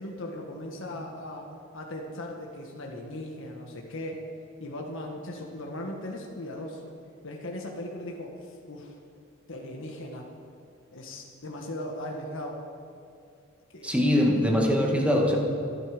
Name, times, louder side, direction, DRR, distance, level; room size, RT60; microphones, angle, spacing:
voice 1, 0.0-1.5 1.7-4.2 4.6-6.9 7.2-8.9 9.5-10.3 10.9-12.6 13.7-14.2, left 1 dB, 65° left, 0 dB, 1.6 m, -38 dB
voice 2, 13.8-15.4, equal, 5° right, 0 dB, 1.9 m, -22 dB
26.5 x 9.5 x 5.1 m, 2.5 s
head